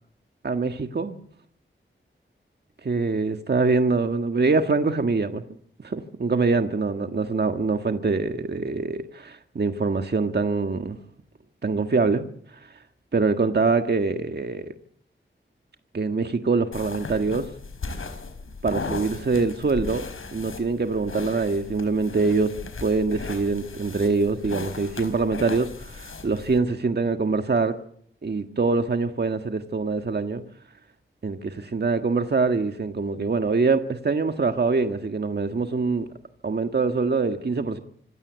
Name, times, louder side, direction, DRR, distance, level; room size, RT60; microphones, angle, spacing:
voice 1, 0.4-1.2 2.8-5.4 5.8-11.0 11.6-12.3 12.5-12.7 13.1-14.7 15.9-17.5 18.6-20.0 20.3-27.8 28.2-30.4 31.2-36.1 36.4-37.8, right 4 dB, 55° right, 1.6 m, -24 dB
sound 1, 16.7-26.6, left 4 dB, 85° left, 4.5 m, -37 dB
26.0 x 16.0 x 8.1 m
wide cardioid pair, 95°, 21 cm